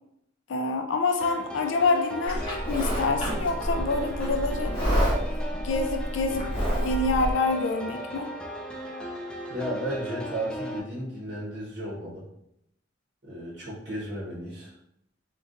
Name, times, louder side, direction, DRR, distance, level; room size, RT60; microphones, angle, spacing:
voice 1, 0.5-4.7 5.6-8.3, left 3 dB, 70° left, 5 dB, 0.4 m, -27 dB
sound 1, 1.2-10.8, equal, 5° left, 0.3 m, -37 dB
Livestock farm animals working animals, 2.3-7.3, equal, 25° left, 0.9 m, -28 dB
voice 2, 9.5-12.2 13.2-14.7, right 1 dB, 55° right, -6 dB, 0.8 m, -34 dB
3.7 x 2.2 x 2.5 m, 0.80 s
head